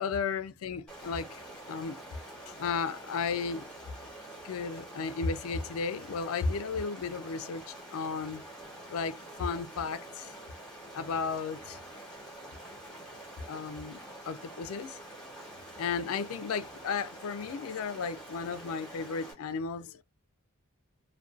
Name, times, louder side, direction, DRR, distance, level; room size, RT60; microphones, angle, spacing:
voice 1, 0.0-1.4 1.7-2.0 2.6-3.7 4.4-8.4 8.9-10.3 10.9-11.8 13.5-15.0 15.8-20.0, left 5 dB, 70° left, 0.4 m, -34 dB
Stream, 0.9-19.3, right 1 dB, 5° left, 0.9 m, -47 dB
2.5 x 2.2 x 2.3 m
head